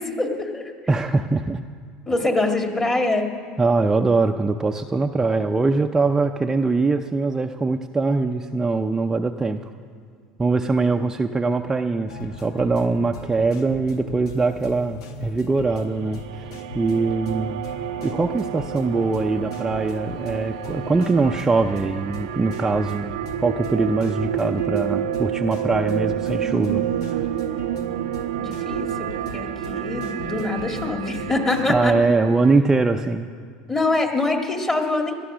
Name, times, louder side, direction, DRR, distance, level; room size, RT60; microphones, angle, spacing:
voice 1, 0.0-0.7 2.1-3.3 28.4-28.9 29.1-31.9 33.7-35.1, left 2 dB, 20° left, 3 dB, 2.0 m, -24 dB
voice 2, 0.9-1.6 3.6-9.6 10.4-17.6 18.0-27.3 31.7-33.3, right 3 dB, 15° right, 4 dB, 0.6 m, -22 dB
sound 1, 12.1-31.9, left 2 dB, 85° left, 1.2 m, -39 dB
sound 2, 15.7-32.6, right 11 dB, 90° right, 0.6 m, -29 dB
18.5 x 12.5 x 6.2 m, 2.1 s
supercardioid pair, 105°, 3 cm